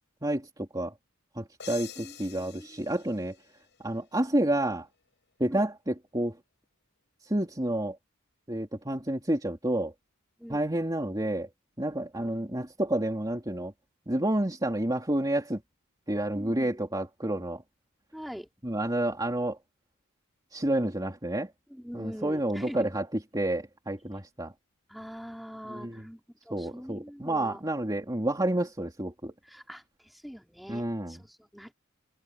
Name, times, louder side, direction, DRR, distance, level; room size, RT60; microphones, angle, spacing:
voice 1, 0.2-0.9 1.3-3.3 3.8-4.9 5.4-6.4 7.2-8.0 8.5-9.9 10.5-11.5 11.8-13.7 14.1-15.6 16.1-17.6 18.6-19.6 20.5-21.5 21.9-23.1 23.3-24.5 25.7-26.0 26.5-29.3 30.7-31.2, right 1 dB, 20° right, 3.0 m, -29 dB
sound 1, 1.6-4.3, left 10 dB, 60° left, 8.0 m, -47 dB
voice 2, 2.0-2.9 5.5-5.7 10.4-10.6 12.1-12.7 16.3-16.8 18.1-18.5 21.7-22.8 24.9-27.6 29.4-31.7, equal, ahead, 5.0 m, -44 dB
head